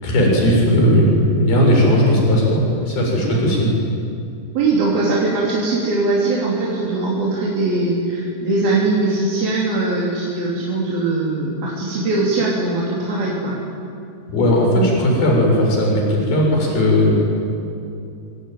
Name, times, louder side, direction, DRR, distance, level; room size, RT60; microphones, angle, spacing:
voice 1, 0.0-3.7 14.3-17.1, equal, 70° left, -1 dB, 8.3 m, -16 dB
voice 2, 4.6-13.6, right 2 dB, 70° right, -5 dB, 5.3 m, -21 dB
25.5 x 24.5 x 9.3 m, 2.6 s
omnidirectional pair, 4.5 m